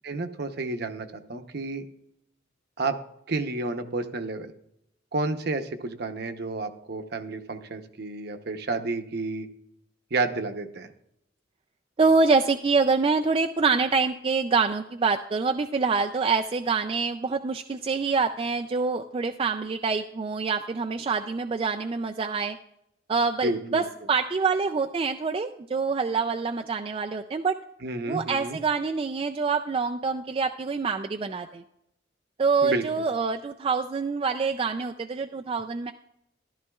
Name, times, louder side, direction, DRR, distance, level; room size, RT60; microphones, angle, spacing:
voice 1, 0.0-1.8 2.8-3.0 3.3-4.5 5.1-9.5 10.1-10.9 23.4-23.8 27.8-28.6 32.6-33.0, right 3 dB, 55° right, 7 dB, 0.8 m, -30 dB
voice 2, 12.0-22.6 23.1-27.6 28.1-31.6 32.4-35.9, right 4 dB, 30° right, 4 dB, 0.3 m, -26 dB
14.0 x 12.5 x 2.3 m, 0.78 s
head